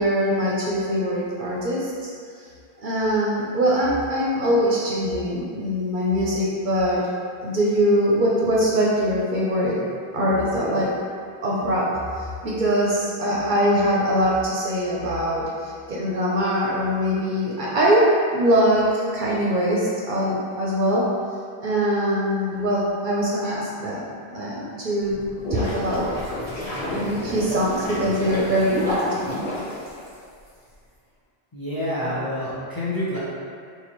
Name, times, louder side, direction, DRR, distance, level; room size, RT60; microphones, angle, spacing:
voice 1, 0.0-2.1 2.4-2.5 2.8-7.0 7.4-9.7 10.1-10.9 11.4-11.9 12.1-18.1 18.3-21.0 21.6-24.0 24.3-25.2 25.5-26.1 26.6-29.4, equal, 60° right, -5 dB, 0.7 m, -22 dB
sound 1, 25.1-30.5, left 1 dB, 85° left, 1.5 m, -30 dB
voice 2, 31.5-33.2, left 1 dB, 25° left, -9 dB, 0.6 m, -27 dB
4.1 x 2.6 x 2.9 m, 2.2 s
omnidirectional pair, 1.1 m